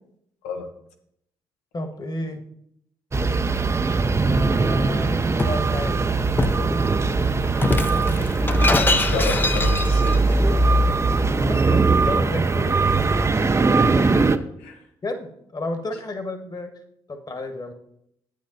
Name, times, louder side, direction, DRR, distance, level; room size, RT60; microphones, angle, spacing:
voice 1, 1.7-2.4 4.2-5.1 5.4-6.0 6.5-6.8 11.5-12.9 15.0-16.7 17.1-17.7, left 2 dB, 40° left, 7 dB, 1.7 m, -32 dB
sound 1, 3.1-14.4, right 3 dB, 25° right, 0.6 m, -20 dB
Shatter, 4.8-5.6 6.4-6.7 7.6-10.2, left 3 dB, 20° left, 0.6 m, -24 dB
voice 2, 7.6-8.6 8.9-10.2 13.8-14.1 14.6-14.8, left 4 dB, 85° left, 5 dB, 1.1 m, -32 dB
8.8 x 8.5 x 4.1 m, 0.74 s
hypercardioid pair, 50°, 11 cm